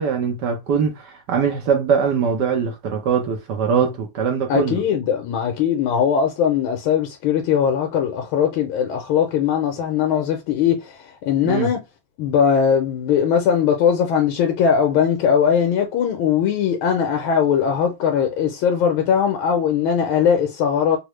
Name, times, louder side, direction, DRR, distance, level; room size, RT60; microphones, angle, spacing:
voice 1, 0.0-4.8 11.4-11.7, right 6 dB, 65° right, 1.2 m, -22 dB
voice 2, 4.5-11.8 12.2-21.0, left 8 dB, 85° left, 1.4 m, -20 dB
3.8 x 2.1 x 3.0 m
omnidirectional pair, 2.3 m